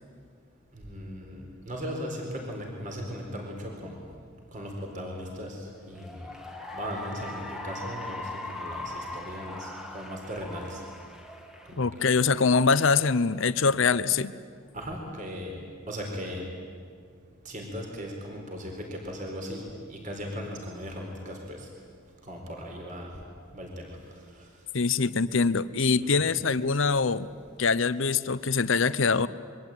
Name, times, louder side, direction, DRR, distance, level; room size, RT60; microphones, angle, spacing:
voice 1, 0.7-4.0 4.5-6.2 6.7-10.8 11.7-11.8 14.7-15.5 15.9-16.5 17.4-19.6 19.9-21.7 22.3-23.1 23.5-24.0 26.0-26.3, equal, 35° right, 1 dB, 4.4 m, -37 dB
Cheering / Applause, 5.8-12.5, left 2 dB, ahead, 1.8 m, -40 dB
voice 2, 11.8-14.3 24.7-27.3 27.6-29.3, left 4 dB, 65° left, 15 dB, 0.8 m, -24 dB
27.5 x 23.0 x 9.2 m, 2.1 s
head